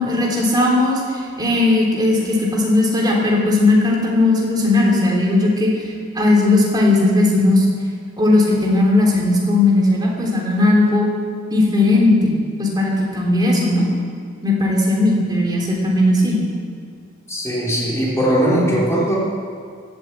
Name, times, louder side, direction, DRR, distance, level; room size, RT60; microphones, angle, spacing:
voice 1, 0.0-5.7 6.2-7.6 8.2-11.1 11.5-12.3 12.6-13.8 14.4-16.4, left 2 dB, 20° right, -3 dB, 3.3 m, -17 dB
voice 2, 17.3-19.2, right 1 dB, 15° left, -6 dB, 4.0 m, -19 dB
17.0 x 8.8 x 8.4 m, 2.1 s
head